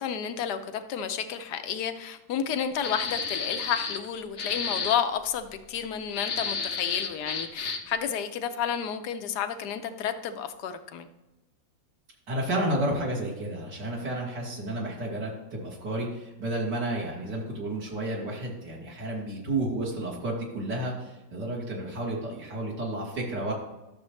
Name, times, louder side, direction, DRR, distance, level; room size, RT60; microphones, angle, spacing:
voice 1, 0.0-11.1, left 8 dB, 65° left, 9 dB, 1.2 m, -31 dB
sound 1, 2.8-4.1 4.4-5.0 6.1-7.9, left 5 dB, 50° left, 0.9 m, -32 dB
voice 2, 12.3-23.5, right 1 dB, 65° right, -5 dB, 3.0 m, -31 dB
12.5 x 7.0 x 3.2 m, 1.0 s
omnidirectional pair, 2.0 m